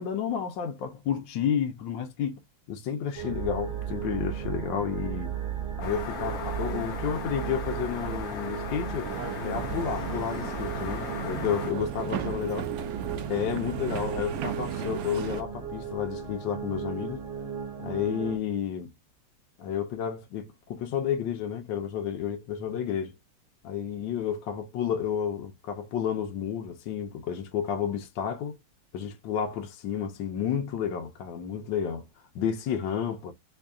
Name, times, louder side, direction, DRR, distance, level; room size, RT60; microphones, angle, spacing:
voice 1, 0.0-2.4 2.7-5.3 5.8-9.1 9.4-12.6 13.3-17.2 17.8-18.9 19.6-23.1 23.6-28.6 28.9-32.0 32.3-33.3, left 8 dB, 80° left, 1.4 m, -31 dB
sound 1, 3.1-18.4, right 8 dB, 40° right, 0.8 m, -36 dB
sound 2, 5.8-11.7, left 7 dB, 65° left, 1.1 m, -38 dB
sound 3, 9.0-15.4, right 8 dB, 70° right, 0.8 m, -36 dB
3.5 x 2.3 x 3.6 m
omnidirectional pair, 2.0 m